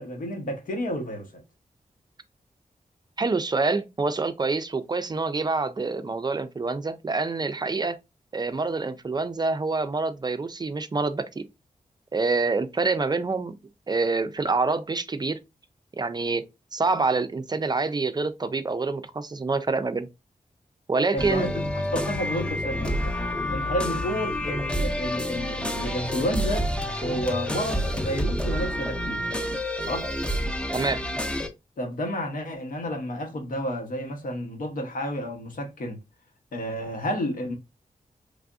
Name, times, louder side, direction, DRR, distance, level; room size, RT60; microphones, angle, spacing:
voice 1, 0.0-1.4 21.1-21.5 21.9-23.1 23.5-26.7 27.0-29.3 29.9-30.1 31.8-36.0 36.5-37.5, equal, 75° left, 0.9 m, -31 dB
voice 2, 3.2-8.0 8.3-11.4 12.1-13.5 13.9-15.4 16.0-16.4 16.7-20.1 20.9-21.5 30.7-31.0, right 3 dB, 30° right, 0.4 m, -26 dB
sound 1, 21.2-31.5, equal, 10° left, 0.7 m, -28 dB
3.3 x 2.5 x 2.3 m
cardioid pair, 60°, 14 cm